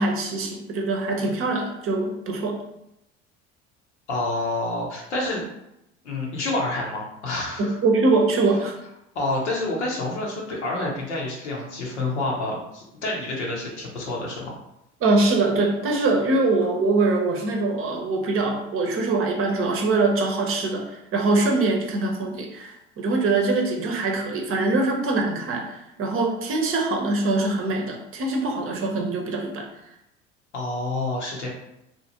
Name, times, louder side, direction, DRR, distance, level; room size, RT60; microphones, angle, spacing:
voice 1, 0.0-2.6 7.6-8.8 15.0-29.7, right 3 dB, 40° right, 2 dB, 0.7 m, -23 dB
voice 2, 4.1-5.4 6.0-7.8 9.1-14.5 30.5-31.5, left 2 dB, 85° left, -2 dB, 0.9 m, -28 dB
2.8 x 2.4 x 2.8 m, 0.83 s
hypercardioid pair, 70°, 33 cm